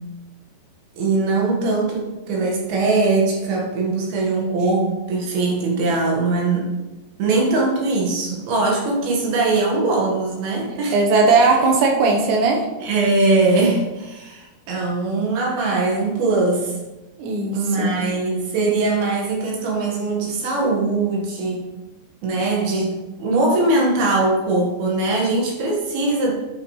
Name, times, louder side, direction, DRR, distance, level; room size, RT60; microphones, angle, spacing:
voice 1, 1.0-6.7 7.2-11.0 12.8-16.8 17.5-21.7 22.2-22.9 23.2-26.3, right 3 dB, 65° right, -2 dB, 3.3 m, -21 dB
voice 2, 10.7-12.7 17.2-18.0, right 3 dB, 85° right, 1 dB, 3.5 m, -18 dB
8.8 x 6.9 x 3.2 m, 1.1 s
omnidirectional pair, 5.0 m